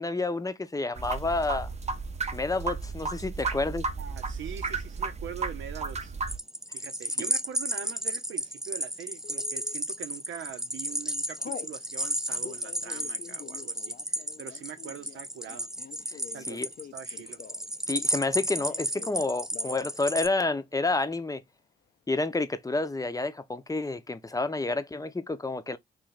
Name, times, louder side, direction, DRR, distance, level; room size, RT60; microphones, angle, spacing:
voice 1, 0.0-1.7 2.3-3.8 16.1-16.2 16.5-16.7 17.9-21.4 22.1-25.8, left 3 dB, 15° left, 0.7 m, -29 dB
sound 1, 1.0-6.4, right 4 dB, 30° right, 0.7 m, -33 dB
voice 2, 4.0-6.1 6.7-15.7 16.3-16.6 16.9-17.4, right 8 dB, 70° right, 0.8 m, -43 dB
sound 2, 6.3-20.3, right 1 dB, 5° right, 0.4 m, -33 dB
Telephone, 9.2-9.7 10.3-10.6 10.9-11.7 12.3-17.8 18.1-19.2 19.5-19.9 20.2-20.3 20.6-21.2, left 8 dB, 50° left, 0.6 m, -46 dB
3.2 x 2.6 x 4.0 m
hypercardioid pair, 50°, 21 cm